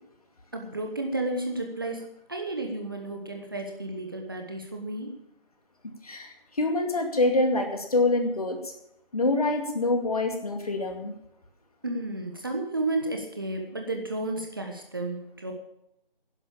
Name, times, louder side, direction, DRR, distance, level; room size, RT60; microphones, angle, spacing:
voice 1, 0.5-5.2 11.8-15.5, right 2 dB, 25° right, 3 dB, 1.2 m, -32 dB
voice 2, 6.0-8.6 9.1-11.1, left 2 dB, 40° left, 4 dB, 2.4 m, -25 dB
11.5 x 11.0 x 7.0 m, 0.81 s
figure-of-eight pair, 165°, 29 cm